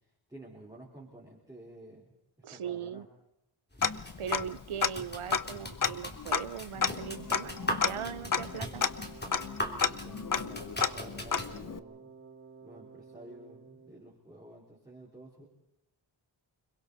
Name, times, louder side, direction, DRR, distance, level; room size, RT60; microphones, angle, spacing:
voice 1, 0.3-2.1 2.5-3.0 9.5-12.1 12.6-15.4, right 1 dB, 10° right, -5 dB, 4.3 m, -51 dB
voice 2, 2.4-3.1 4.2-7.6 7.8-8.9, right 8 dB, 90° right, 17 dB, 0.8 m, -39 dB
sound 1, 3.7-11.5, equal, 20° left, 3.0 m, -40 dB
Tick-tock, 3.8-4.6 4.8-4.9 5.3-11.8, left 6 dB, 40° left, 0.7 m, -31 dB
Wind instrument woodwind instrument, 6.8-14.2, right 5 dB, 25° right, 1.6 m, -52 dB
29.5 x 22.0 x 4.1 m, 0.82 s
wide cardioid pair, 85°, 49 cm